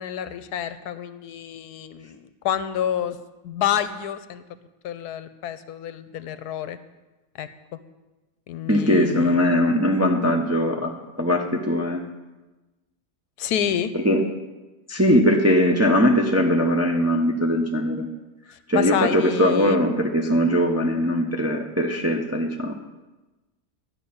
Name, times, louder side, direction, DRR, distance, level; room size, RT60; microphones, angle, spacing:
voice 1, 0.0-3.2 3.4-4.4 4.8-6.8 7.4-7.5 8.5-9.4 13.4-13.9 18.7-19.8, left 9 dB, 80° left, 13 dB, 1.2 m, -28 dB
voice 2, 8.7-12.0 13.9-14.2 14.9-18.1 18.7-22.7, equal, 15° right, 1 dB, 0.6 m, -20 dB
11.5 x 5.7 x 8.6 m, 1.1 s
omnidirectional pair, 1.7 m